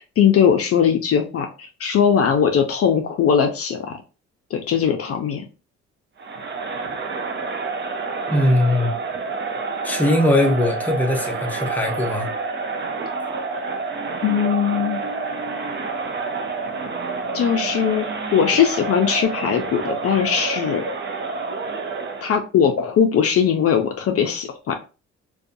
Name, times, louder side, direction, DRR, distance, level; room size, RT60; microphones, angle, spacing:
voice 1, 0.2-4.0 4.5-5.4 14.2-15.0 17.3-18.1 18.3-20.8 22.2-24.7, left 8 dB, 50° left, 0.5 m, -20 dB
Crowd, 6.2-22.4, right 4 dB, 35° right, 0.6 m, -28 dB
voice 2, 8.3-8.9 9.8-12.3, left 1 dB, 5° left, 0.7 m, -20 dB
2.5 x 2.3 x 2.6 m
cardioid pair, 90°, 30 cm